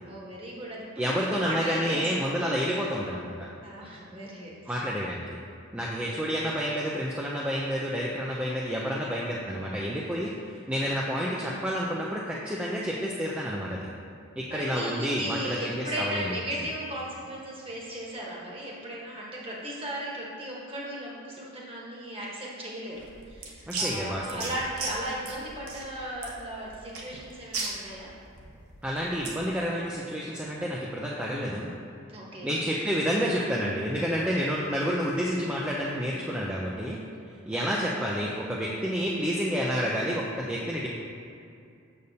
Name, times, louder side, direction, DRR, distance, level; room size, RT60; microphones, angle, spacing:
voice 1, 0.0-2.3 3.6-4.8 5.8-6.2 10.7-10.8 14.5-28.1 32.1-32.5 37.5-37.9, right 1 dB, 25° right, -4 dB, 1.1 m, -37 dB
voice 2, 1.0-3.5 4.7-5.2 5.7-13.9 14.4-16.3 23.7-24.5 28.8-31.7 32.4-37.0 37.5-40.9, equal, 5° right, -5 dB, 0.3 m, -29 dB
sound 1, 22.9-29.5, right 3 dB, 85° right, 0.9 m, -37 dB
6.6 x 6.6 x 2.7 m, 2.4 s
head